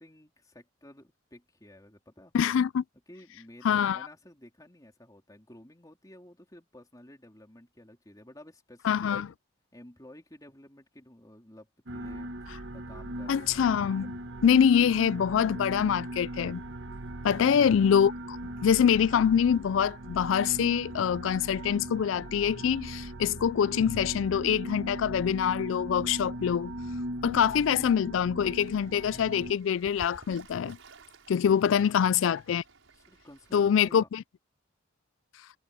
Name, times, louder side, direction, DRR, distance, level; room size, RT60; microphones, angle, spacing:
voice 1, 0.0-2.6 3.1-9.2 9.7-13.6 14.5-15.5 31.8-31.9 32.9-34.1, left 1 dB, 20° left, 3.6 m, -53 dB
voice 2, 2.3-2.8 3.6-4.0 8.8-9.3 13.3-14.1 14.4-16.6 17.2-18.4 18.6-26.7 27.2-30.8 31.3-32.6 33.5-34.2, left 8 dB, 80° left, 0.3 m, -25 dB
sound 1, 11.9-29.5, right 1 dB, 65° right, 1.2 m, -39 dB
sound 2, 16.5-26.6, equal, 15° right, 3.8 m, -68 dB
Fowl / Bird, 28.5-34.0, right 2 dB, 90° right, 6.4 m, -54 dB
head